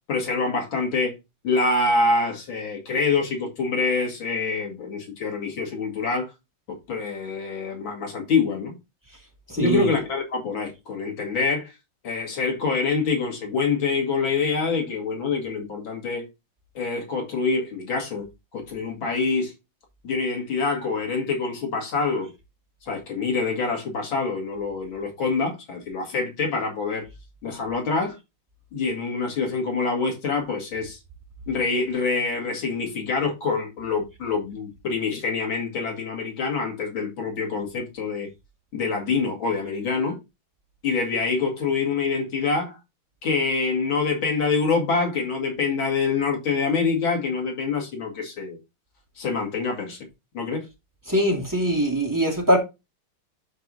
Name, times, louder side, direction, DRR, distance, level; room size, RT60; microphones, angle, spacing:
voice 1, 0.1-1.1 1.4-6.3 6.7-8.7 9.6-11.7 12.0-16.3 16.7-18.3 18.5-19.5 20.0-22.3 22.8-27.0 27.4-28.2 28.7-31.0 31.5-38.3 38.7-40.2 40.8-42.8 43.2-48.6 49.2-50.0 50.3-50.6, left 4 dB, 90° left, 3.0 m, -25 dB
voice 2, 9.5-9.9 51.1-52.6, equal, 10° right, 2.2 m, -22 dB
11.5 x 4.8 x 2.7 m
omnidirectional pair, 2.1 m